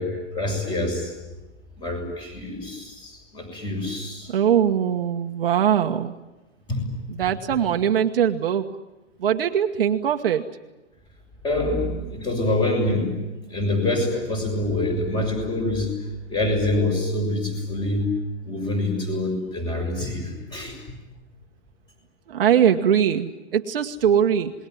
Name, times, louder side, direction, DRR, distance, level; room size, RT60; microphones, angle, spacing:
voice 1, 0.0-1.4 1.8-4.3 6.7-6.9 7.2-7.3 11.4-13.1 13.5-15.9 16.3-18.1 18.4-20.8, left 2 dB, 15° left, 4 dB, 6.7 m, -26 dB
voice 2, 4.3-6.1 7.2-8.7 9.2-10.4 22.3-24.5, right 9 dB, 50° right, 5 dB, 1.4 m, -21 dB
27.0 x 21.0 x 9.4 m, 1.0 s
hypercardioid pair, 155°, 35 cm